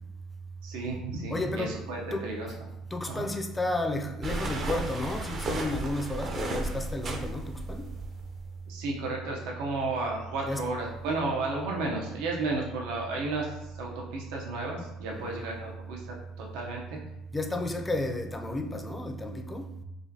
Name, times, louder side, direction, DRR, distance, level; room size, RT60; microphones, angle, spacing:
voice 1, 0.6-2.5 3.1-3.2 8.7-17.0, right 3 dB, 85° right, 0.6 m, -33 dB
voice 2, 1.3-1.8 2.1-2.5 2.9-7.9 10.4-10.7 15.1-15.5 17.3-19.7, left 1 dB, 15° left, 0.4 m, -32 dB
sound 1, 4.2-8.6, right 2 dB, 40° right, 0.5 m, -34 dB
4.9 x 2.2 x 2.7 m
cardioid pair, 125°, 0 cm